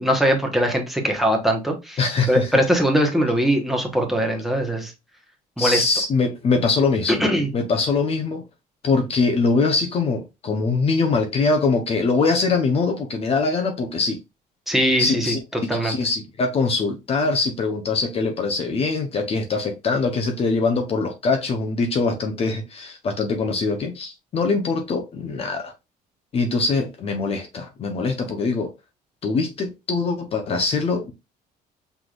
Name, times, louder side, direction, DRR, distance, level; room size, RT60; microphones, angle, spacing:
voice 1, 0.0-2.0 2.3-4.9 5.6-5.8 7.1-7.5 14.7-15.4 15.7-15.9, equal, ahead, 1.1 m, -21 dB
voice 2, 2.0-2.5 5.6-7.2 7.5-8.4 8.8-14.2 15.0-15.4 15.8-25.7 26.3-28.7 29.2-31.1, left 4 dB, 35° left, 0.7 m, -23 dB
6.0 x 3.4 x 2.4 m
cardioid pair, 145°, 16 cm